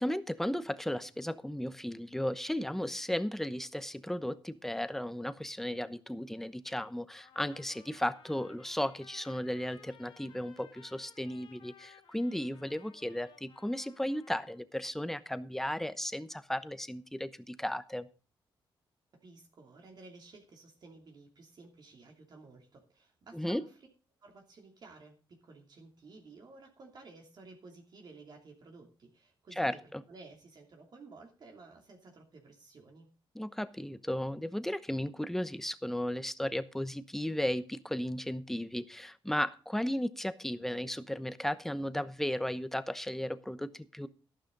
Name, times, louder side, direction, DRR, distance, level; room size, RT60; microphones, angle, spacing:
voice 1, 0.0-18.1 23.3-23.6 29.6-30.0 33.3-44.1, left 1 dB, 5° left, 12 dB, 0.9 m, -35 dB
Trumpet, 7.1-14.6, left 7 dB, 75° left, 2.3 m, -59 dB
voice 2, 19.2-23.8 24.2-29.8 30.1-33.1, right 3 dB, 50° right, 1 dB, 2.9 m, -54 dB
12.5 x 11.5 x 3.9 m, 0.36 s
cardioid pair, 105°, 9 cm